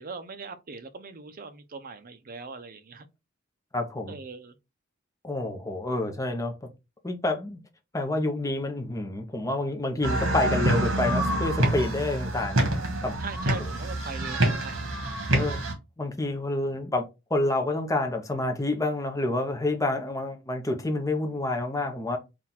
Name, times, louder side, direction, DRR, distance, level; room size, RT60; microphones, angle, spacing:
voice 1, 0.0-3.1 4.1-4.6 13.2-15.1, right 4 dB, 45° right, 0.6 m, -40 dB
voice 2, 3.7-4.2 5.2-6.7 7.0-7.6 7.9-12.7 13.0-13.2 15.3-15.6 16.0-22.2, left 2 dB, 15° left, 0.7 m, -28 dB
sound 1, 10.0-15.7, right 1 dB, 70° right, 1.3 m, -26 dB
3.8 x 2.4 x 4.2 m
head